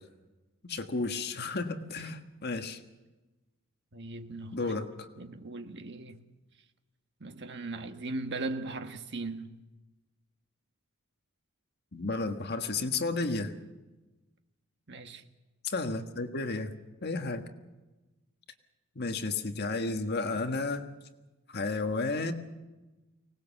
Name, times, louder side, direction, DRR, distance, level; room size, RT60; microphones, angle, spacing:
voice 1, 0.6-2.8 4.5-5.1 11.9-13.5 15.6-16.7 17.0-17.4 18.9-20.8 21.5-22.3, left 3 dB, 50° left, 1.6 m, -32 dB
voice 2, 3.9-4.7 5.2-6.2 7.2-9.6 14.9-15.2, right 2 dB, 55° right, 1.5 m, -38 dB
24.5 x 19.0 x 7.2 m
head